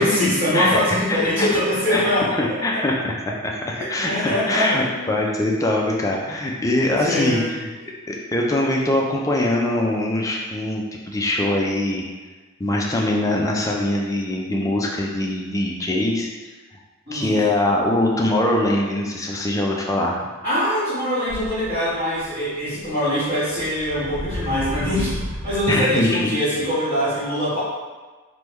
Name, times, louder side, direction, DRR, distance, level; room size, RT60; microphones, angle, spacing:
voice 1, 0.0-2.3 3.7-5.0 7.0-7.5 17.1-17.4 20.4-27.6, left 1 dB, 40° right, -17 dB, 1.4 m, -23 dB
voice 2, 1.1-1.5 1.9-2.0 2.4-7.7 8.1-12.0 12.6-16.3 17.1-20.2 25.7-26.4, left 1 dB, 15° left, -1 dB, 0.3 m, -22 dB
sound 1, 21.3-22.2 22.8-22.9 23.5-26.0, left 1 dB, 65° right, 1.0 m, -32 dB
3.3 x 2.2 x 3.0 m, 1.3 s
head